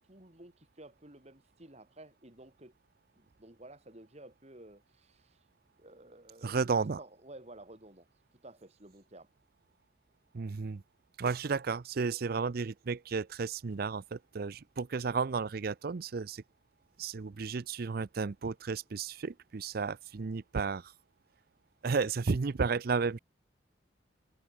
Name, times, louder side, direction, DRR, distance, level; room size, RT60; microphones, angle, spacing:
voice 1, 0.1-2.7 3.2-5.4 5.8-8.1 8.4-9.3, right 2 dB, 35° right, 3.0 m, -53 dB
voice 2, 6.4-7.0 10.3-10.8 11.2-16.4 17.0-20.9 21.8-23.2, right 4 dB, 50° right, 0.5 m, -33 dB
head